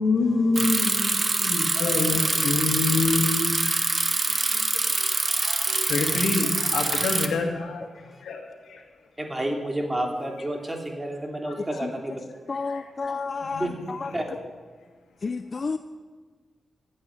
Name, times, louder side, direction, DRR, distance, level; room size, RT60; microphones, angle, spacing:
voice 1, 0.0-4.6 4.9-8.8 12.7-12.9 13.4-13.7 14.1-14.2, left 3 dB, 90° left, 3 dB, 2.1 m, -27 dB
Bicycle, 0.6-7.3, right 3 dB, 35° right, 1.4 m, -25 dB
voice 2, 9.2-12.2 13.6-13.7 14.1-14.2, right 1 dB, 20° right, 2 dB, 2.9 m, -30 dB
voice 3, 12.5-14.1 15.2-15.8, left 4 dB, 45° left, 10 dB, 0.5 m, -31 dB
15.0 x 8.7 x 10.0 m, 1.5 s
cardioid pair, 70°, 0 cm